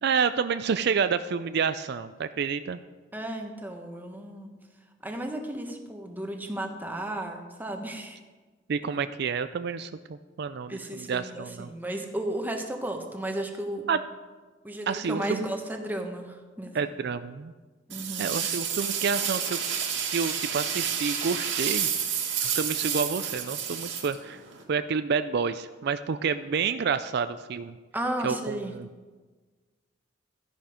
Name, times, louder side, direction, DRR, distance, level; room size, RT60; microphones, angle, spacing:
voice 1, 0.0-2.8 8.7-9.9 10.4-11.7 13.9-14.0 14.9-15.4 16.7-17.5 18.2-19.6 20.1-21.9 22.4-24.4 24.7-27.8 28.2-28.9, right 6 dB, 60° right, 11 dB, 0.4 m, -29 dB
voice 2, 3.1-4.5 5.0-8.2 10.7-13.8 14.6-16.8 17.9-18.3 27.9-28.7, right 1 dB, 10° right, 3 dB, 1.3 m, -34 dB
sound 1, 17.9-24.6, right 8 dB, 80° right, 2.2 m, -30 dB
13.0 x 10.5 x 5.1 m, 1.4 s
head